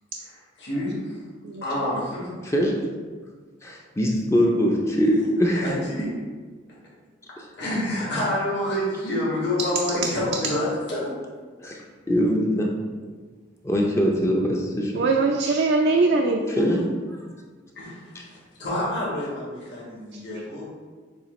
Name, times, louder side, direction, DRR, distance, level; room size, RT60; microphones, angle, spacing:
voice 1, 0.2-1.2 1.6-2.3 5.6-6.1 7.5-11.1 17.7-18.3 18.6-20.7, left 1 dB, 60° left, -7 dB, 1.3 m, -28 dB
voice 2, 2.4-2.8 3.6-5.7 7.4-7.5 11.6-11.8 12.1-12.7 13.6-15.0 16.6-16.8, equal, 15° left, -1 dB, 0.4 m, -22 dB
voice 3, 14.9-16.7 20.1-20.2, right 3 dB, 60° right, 2 dB, 0.3 m, -22 dB
6.9 x 2.4 x 3.1 m, 1.5 s
head